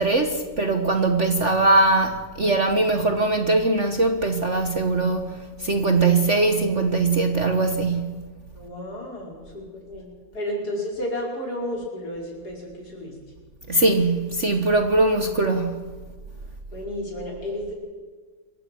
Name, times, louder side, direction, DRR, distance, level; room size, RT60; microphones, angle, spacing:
voice 1, 0.0-8.2 13.7-15.9, right 2 dB, 40° right, 1.4 m, -21 dB
voice 2, 8.5-13.2 16.7-17.8, left 1 dB, 50° left, 6.0 m, -32 dB
27.0 x 15.5 x 6.2 m
omnidirectional pair, 2.2 m